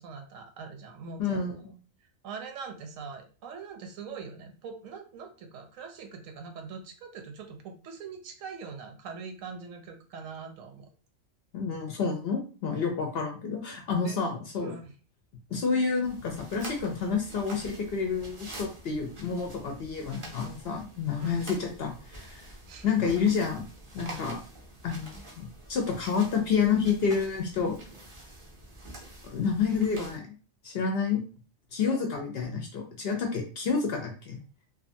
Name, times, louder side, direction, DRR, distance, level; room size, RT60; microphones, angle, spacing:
voice 1, 0.0-1.5 2.2-10.9 14.0-14.2 14.6-14.9 21.2-21.4 22.7-23.3 31.8-32.0, right 5 dB, 85° right, 5 dB, 1.0 m, -42 dB
voice 2, 1.2-1.7 11.5-14.7 15.5-22.5 22.8-23.7 23.9-24.4 24.8-27.8 29.3-30.2 30.6-31.2 31.7-34.4, left 5 dB, 65° left, 2 dB, 0.6 m, -29 dB
sound 1, 16.0-30.2, right 1 dB, 55° right, 0.3 m, -46 dB
2.7 x 2.2 x 2.6 m, 0.37 s
omnidirectional pair, 1.4 m